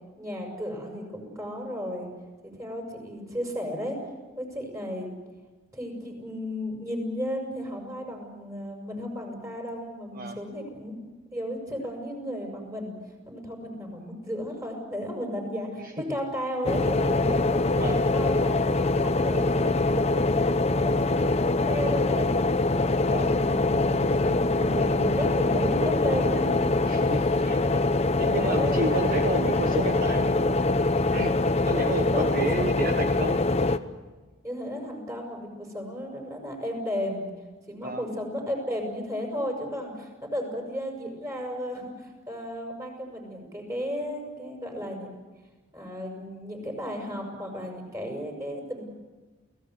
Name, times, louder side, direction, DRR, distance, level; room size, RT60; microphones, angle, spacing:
voice 1, 0.2-2.1 2.4-4.0 4.3-5.1 5.7-11.0 11.3-13.0 13.3-17.6 18.1-20.5 20.7-21.3 21.7-22.6 22.9-27.5 28.3-29.3 29.7-30.1 32.1-32.8 34.4-37.2 37.7-45.1 45.7-48.8, equal, 15° right, 2 dB, 6.9 m, -34 dB
voice 2, 15.8-16.2 17.7-18.0 23.0-23.3 26.8-27.6 28.2-30.6 31.1-31.3 31.6-33.4 37.8-38.0, right 2 dB, 45° right, 5 dB, 1.2 m, -31 dB
sound 1, 16.6-33.8, left 2 dB, 30° left, 0.8 m, -24 dB
29.0 x 18.0 x 8.1 m, 1.3 s
head